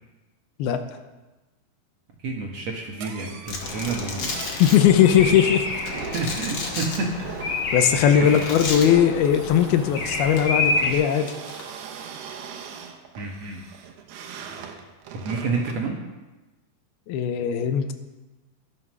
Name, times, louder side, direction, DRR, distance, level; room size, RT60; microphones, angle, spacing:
voice 1, 2.2-4.7 6.1-7.3 8.2-8.5 13.2-13.6 15.1-16.0, right 3 dB, 60° right, 0 dB, 1.9 m, -29 dB
sound 1, 2.9-15.9, right 7 dB, 85° right, 3.1 m, -41 dB
Domestic sounds home sounds, 3.5-4.8 5.9-7.0 8.3-8.9 10.2-10.4 11.3-11.6, left 3 dB, 40° left, 1.7 m, -31 dB
Bird vocalization bird call bird song, 3.6-10.9, left 2 dB, 65° left, 3.4 m, -29 dB
voice 2, 4.5-5.7 7.7-11.3 17.1-17.9, left 9 dB, 85° left, 8 dB, 2.8 m, -19 dB
12.0 x 11.0 x 6.2 m, 1.1 s
omnidirectional pair, 4.4 m